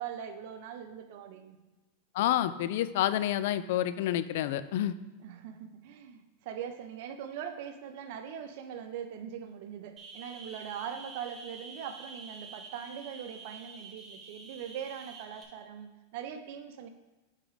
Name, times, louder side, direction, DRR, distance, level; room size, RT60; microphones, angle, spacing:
voice 1, 0.0-1.6 5.2-16.9, right 8 dB, 60° right, 7 dB, 0.7 m, -41 dB
voice 2, 2.1-4.9, left 12 dB, 65° left, 14 dB, 0.3 m, -28 dB
sound 1, 10.0-15.4, right 4 dB, 25° right, 1.3 m, -48 dB
8.5 x 3.7 x 3.3 m, 1.1 s
hypercardioid pair, 100°, 0 cm